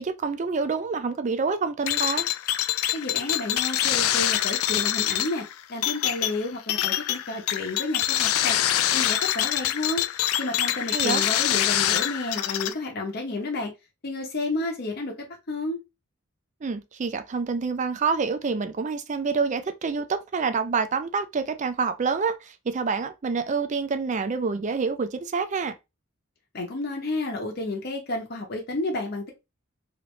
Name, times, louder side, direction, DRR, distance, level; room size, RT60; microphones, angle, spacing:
voice 1, 0.0-2.3 10.9-11.2 16.6-25.8, right 5 dB, 35° right, 0.4 m, -27 dB
sound 1, 1.9-12.7, left 12 dB, 85° left, 0.3 m, -25 dB
voice 2, 2.9-8.6 8.9-13.7 14.0-15.8 26.5-29.3, left 2 dB, 50° left, 0.8 m, -31 dB
3.2 x 2.6 x 3.0 m
head